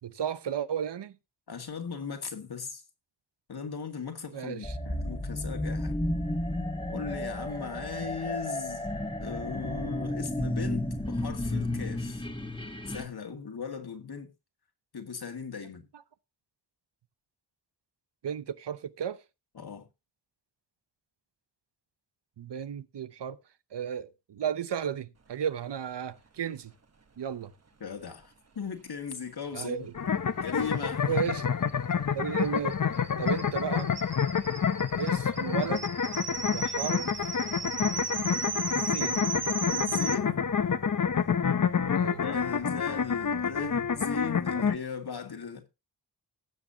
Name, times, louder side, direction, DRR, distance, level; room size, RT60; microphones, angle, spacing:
voice 1, 0.0-1.2 4.3-4.8 18.2-19.2 22.4-23.4 23.7-26.7 27.2-27.5 29.5-29.9 31.1-31.4 32.1-32.8 33.2-33.9 35.0-35.9 36.5-37.1 38.7-39.3 41.9-42.2, right 8 dB, 85° right, 0.9 m, -34 dB
voice 2, 1.5-2.8 3.5-6.0 6.9-8.9 9.2-12.3 12.9-14.3 14.9-15.8 19.5-19.9 27.8-29.9 30.4-31.3 39.7-40.4 42.2-45.6, left 6 dB, 70° left, 2.2 m, -38 dB
sound 1, 4.6-13.1, left 1 dB, 10° left, 1.6 m, -32 dB
sound 2, 29.9-44.7, left 6 dB, 50° left, 0.8 m, -28 dB
sound 3, 30.5-30.6 30.8-30.9 31.2-40.1, right 4 dB, 40° right, 1.2 m, -36 dB
18.5 x 7.3 x 2.8 m
wide cardioid pair, 90°, 40 cm